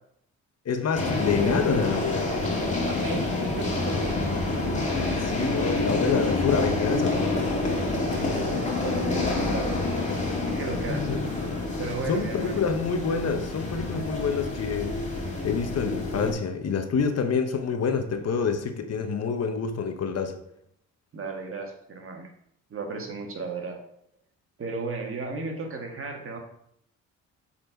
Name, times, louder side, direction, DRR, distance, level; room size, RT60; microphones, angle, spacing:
voice 1, 0.6-2.3 5.2-7.5 11.1-11.2 12.1-15.0 15.4-20.3, left 5 dB, 55° left, 6 dB, 1.0 m, -27 dB
sound 1, 0.9-16.3, left 2 dB, 25° left, 2.2 m, -28 dB
voice 2, 2.9-4.1 8.1-9.7 10.4-11.1 11.8-12.6 21.1-22.3 22.7-23.8 24.6-26.4, right 3 dB, 45° right, 3 dB, 1.6 m, -35 dB
7.7 x 4.4 x 4.5 m, 0.72 s
cardioid pair, 90°, 30 cm